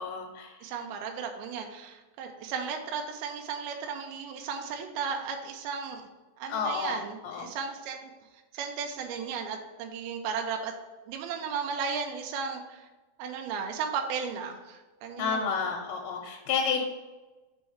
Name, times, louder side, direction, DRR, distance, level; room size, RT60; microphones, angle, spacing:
voice 1, 0.0-0.5 6.5-7.5 15.2-16.8, left 5 dB, 85° left, 1 dB, 2.7 m, -30 dB
voice 2, 0.6-6.0 6.4-8.1 8.5-10.7 11.1-12.9 13.2-15.6, right 6 dB, 80° right, 3 dB, 2.3 m, -35 dB
6.3 x 3.4 x 5.6 m, 1.2 s
omnidirectional pair, 5.0 m